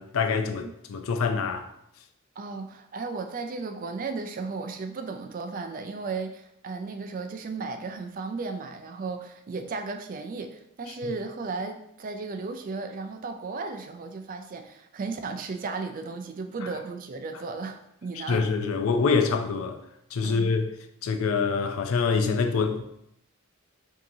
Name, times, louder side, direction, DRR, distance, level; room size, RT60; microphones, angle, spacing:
voice 1, 0.0-1.7 18.2-19.8 20.1-20.7 21.0-22.9, left 5 dB, 70° left, 0.4 m, -25 dB
voice 2, 2.4-18.5 20.2-20.5, right 4 dB, 40° right, 0.3 m, -35 dB
5.4 x 2.8 x 2.7 m
head